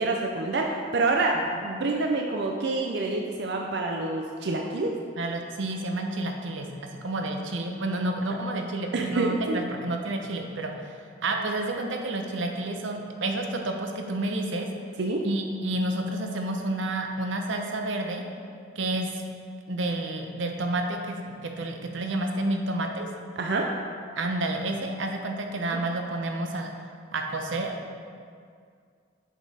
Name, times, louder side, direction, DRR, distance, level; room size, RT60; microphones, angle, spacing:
voice 1, 0.0-5.0 8.9-9.6 15.0-15.3 23.4-23.7, right 3 dB, 60° right, 1 dB, 0.5 m, -27 dB
voice 2, 5.2-6.7 7.0-10.9 11.2-14.7 15.2-18.2 18.8-19.1 19.7-23.1 24.2-26.7 27.1-27.8, right 2 dB, 90° right, 3 dB, 0.7 m, -30 dB
7.1 x 5.2 x 4.1 m, 2.2 s
head